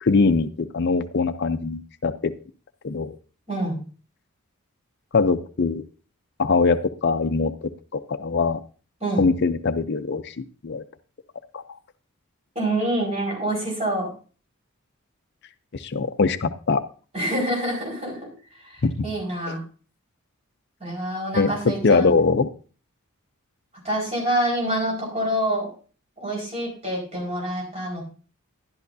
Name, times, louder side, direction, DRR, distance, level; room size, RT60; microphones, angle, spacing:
voice 1, 0.0-2.3 2.8-3.1 5.1-5.8 6.4-8.6 9.2-10.8 11.5-11.6 15.8-16.8 18.8-19.1 19.5-19.6 21.3-21.5 21.8-22.5, left 4 dB, 50° left, 11 dB, 0.5 m, -22 dB
voice 2, 3.5-3.8 9.0-9.2 12.5-14.1 17.1-18.3 18.6-19.6 20.8-22.1 23.8-25.7 26.2-28.0, right 1 dB, 30° right, -3 dB, 4.6 m, -26 dB
11.5 x 10.5 x 2.7 m, 0.37 s
head